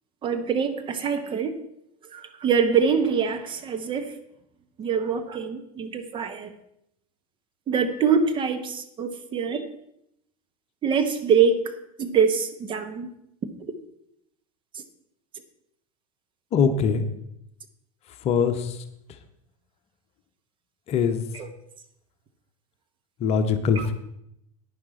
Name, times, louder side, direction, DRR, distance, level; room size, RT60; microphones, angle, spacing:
voice 1, 0.2-1.6 2.1-4.1 4.8-6.5 7.7-9.7 10.8-11.6 12.0-13.1 14.7-14.8 21.3-21.5 23.7-23.9, right 6 dB, 25° right, 8 dB, 1.1 m, -24 dB
voice 2, 16.5-17.1 18.2-18.8 20.9-21.2 23.2-23.9, left 6 dB, 35° left, 8 dB, 1.0 m, -22 dB
11.0 x 9.7 x 4.3 m, 0.77 s
figure-of-eight pair, 85°, 19 cm